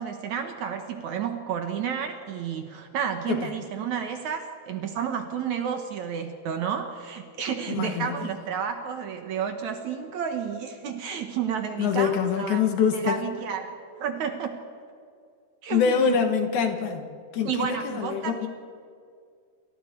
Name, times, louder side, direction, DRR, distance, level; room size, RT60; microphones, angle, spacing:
voice 1, 0.0-12.6 12.9-13.7 14.0-14.6 15.6-16.2 17.4-18.5, right 7 dB, 65° right, 5 dB, 2.7 m, -31 dB
voice 2, 7.7-8.3 11.8-13.2 15.7-17.1 17.3-18.5, left 7 dB, 70° left, 5 dB, 3.2 m, -25 dB
28.5 x 27.5 x 4.7 m, 2.2 s
omnidirectional pair, 3.7 m